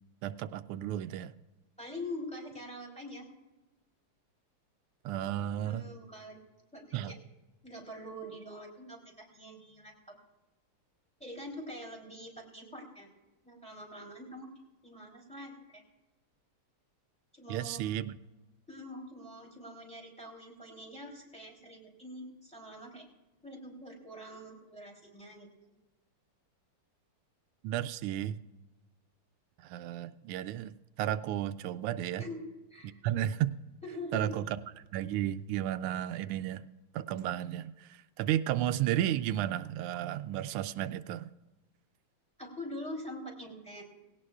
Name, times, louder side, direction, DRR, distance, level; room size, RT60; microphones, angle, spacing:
voice 1, 0.2-1.3 5.0-5.8 6.9-7.2 17.5-18.2 27.6-28.4 29.6-30.7 31.0-32.3 33.0-33.5 34.1-36.6 36.9-41.3, right 12 dB, 90° right, 12 dB, 1.5 m, -33 dB
voice 2, 1.8-3.3 5.6-6.4 6.7-7.1 7.6-10.1 11.2-13.1 13.4-14.5 14.8-15.8 17.3-17.8 18.7-23.1 23.4-25.5 32.2-32.4 32.7-33.0 33.8-34.3 42.4-43.8, left 1 dB, 5° left, -1 dB, 3.1 m, -44 dB
18.5 x 17.5 x 2.4 m, 1.1 s
omnidirectional pair, 2.4 m